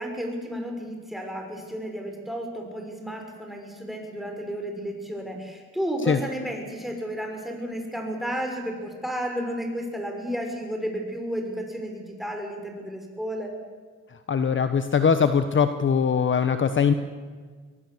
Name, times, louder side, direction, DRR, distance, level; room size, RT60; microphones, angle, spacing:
voice 1, 0.0-13.5, equal, ahead, 2 dB, 6.3 m, -32 dB
voice 2, 14.3-16.9, left 6 dB, 40° left, 10 dB, 1.2 m, -21 dB
23.5 x 19.0 x 8.0 m, 1.5 s
cardioid pair, 90°, 30 cm